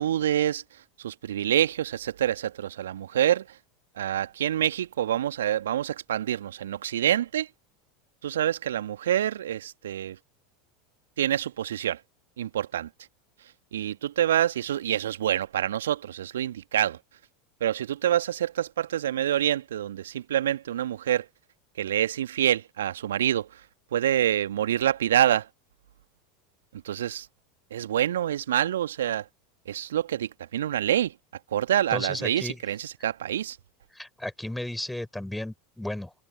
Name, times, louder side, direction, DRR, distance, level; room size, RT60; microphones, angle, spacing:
voice 1, 0.0-3.6 3.9-7.5 8.2-10.2 11.2-12.0 12.4-12.9 13.7-17.0 17.6-21.3 21.7-23.6 23.9-25.5 26.8-27.3 27.7-29.3 29.6-31.1 31.5-33.6, right 11 dB, 70° right, 1.6 m, -26 dB
voice 2, 31.9-32.6 33.9-36.1, left 1 dB, 5° left, 5.3 m, -34 dB
figure-of-eight pair, 80°, 0 cm